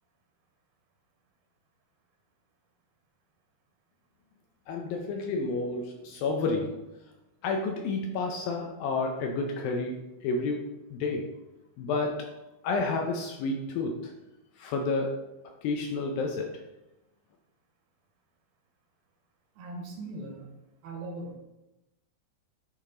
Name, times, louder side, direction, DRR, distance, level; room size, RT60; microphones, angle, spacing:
voice 1, 4.7-6.8 7.4-11.3 11.8-12.3 12.6-14.1 14.6-15.3 15.6-16.5, left 3 dB, 75° left, 2 dB, 2.2 m, -30 dB
voice 2, 19.6-20.5 20.8-21.4, right 2 dB, 75° right, 1 dB, 2.7 m, -39 dB
8.7 x 5.1 x 3.8 m, 0.96 s
omnidirectional pair, 4.7 m